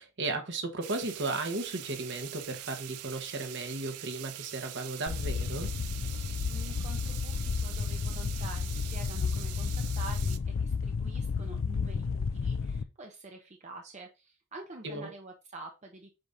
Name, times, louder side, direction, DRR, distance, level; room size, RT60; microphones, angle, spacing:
voice 1, 0.0-5.7 14.8-15.1, right 2 dB, 55° right, 1.2 m, -35 dB
sound 1, 0.8-10.4, right 13 dB, 85° right, 0.5 m, -44 dB
sound 2, 5.1-12.8, left 5 dB, 60° left, 0.5 m, -32 dB
voice 2, 6.5-16.1, right 2 dB, 30° right, 0.7 m, -47 dB
7.7 x 5.2 x 2.7 m
head